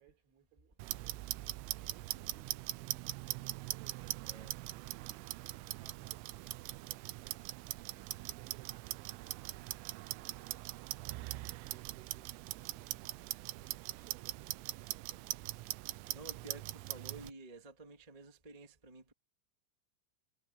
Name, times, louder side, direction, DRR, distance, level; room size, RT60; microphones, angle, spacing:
voice 1, 0.0-5.2 5.7-15.5, right 8 dB, 65° right, 6.5 m, -65 dB
Clock, 0.8-17.3, right 19 dB, 85° right, 3.3 m, -42 dB
voice 2, 4.2-4.6 15.9-19.1, right 3 dB, 15° right, 1.4 m, -52 dB
omnidirectional pair, 5.7 m